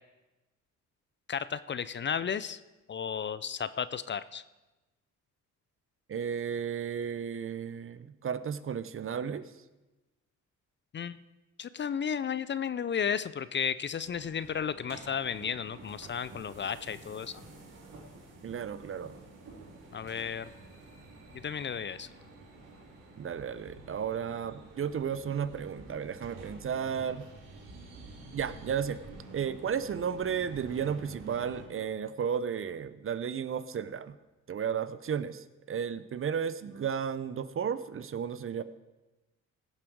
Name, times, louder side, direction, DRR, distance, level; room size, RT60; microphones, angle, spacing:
voice 1, 1.3-2.6 2.9-4.4 10.9-11.2 11.6-17.3 19.9-20.5 21.3-22.1, left 7 dB, 35° left, 15 dB, 0.5 m, -33 dB
voice 2, 6.1-9.5 18.4-19.2 23.2-27.2 28.3-29.0 29.3-34.2 34.5-38.6, right 7 dB, 45° right, 15 dB, 0.7 m, -33 dB
sound 1, 14.1-31.6, right 2 dB, 85° right, 2.3 m, -50 dB
16.0 x 7.3 x 4.7 m, 1.1 s
cardioid pair, 70°, 31 cm